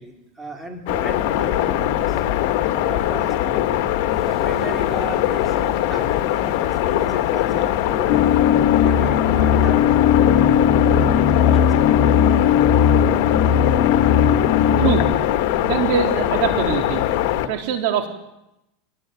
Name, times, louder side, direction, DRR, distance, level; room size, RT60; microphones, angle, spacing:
voice 1, 0.0-2.2 2.8-3.8 4.1-11.7 12.1-12.2 13.9-14.1, right 1 dB, 10° right, 2 dB, 4.4 m, -36 dB
sound 1, 0.9-17.5, left 13 dB, 60° left, 1.9 m, -21 dB
sound 2, 8.1-15.1, left 8 dB, 35° left, 2.4 m, -17 dB
voice 2, 15.6-17.0 17.5-18.1, right 8 dB, 60° right, 6 dB, 3.6 m, -22 dB
26.0 x 19.0 x 9.3 m, 0.87 s
supercardioid pair, 155°, 0 cm